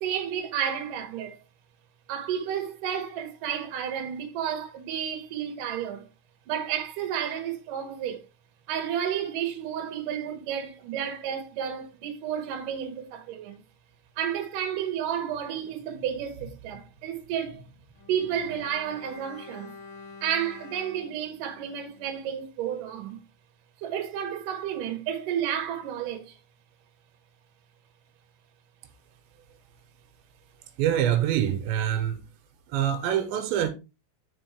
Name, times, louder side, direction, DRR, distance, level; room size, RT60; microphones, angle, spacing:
voice 1, 0.0-1.4 2.1-6.1 6.5-8.2 8.7-13.6 14.2-17.6 18.1-19.7 20.2-23.2 23.8-26.4, right 9 dB, 60° right, 2.7 m, -31 dB
Bowed string instrument, 17.9-22.4 22.7-22.8, left 4 dB, 70° left, 2.4 m, -48 dB
voice 2, 30.8-32.2 32.7-33.7, right 10 dB, 90° right, 3.3 m, -25 dB
9.8 x 5.1 x 3.6 m
omnidirectional pair, 5.0 m